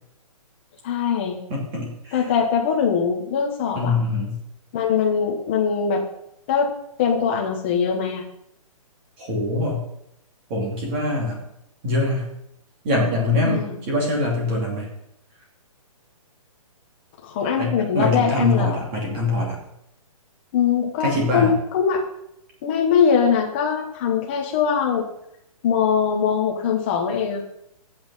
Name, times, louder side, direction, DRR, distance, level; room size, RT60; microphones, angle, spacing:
voice 1, 0.8-1.4 2.1-4.0 4.7-6.0 6.5-8.2 13.4-13.8 17.2-18.8 20.5-22.1 22.6-25.0 25.6-27.4, left 7 dB, 20° left, 1 dB, 1.4 m, -22 dB
voice 2, 1.5-2.2 3.7-4.4 9.2-9.8 10.5-11.4 11.8-12.3 12.8-14.9 17.6-19.6 21.0-21.5, left 2 dB, 20° right, -1 dB, 2.7 m, -23 dB
13.0 x 8.8 x 5.7 m, 0.78 s
hypercardioid pair, 180°, 19 cm